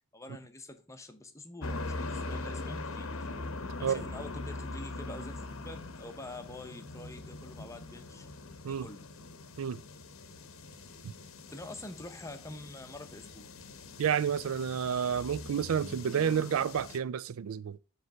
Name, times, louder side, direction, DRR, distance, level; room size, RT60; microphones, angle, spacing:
voice 1, 0.1-3.3 3.8-8.3 8.7-9.0 11.5-13.5, left 2 dB, 15° left, 0.7 m, -46 dB
sound 1, 1.6-17.0, left 2 dB, 65° left, 0.8 m, -42 dB
voice 2, 14.0-17.8, right 8 dB, 70° right, 0.4 m, -30 dB
7.7 x 3.2 x 5.9 m
head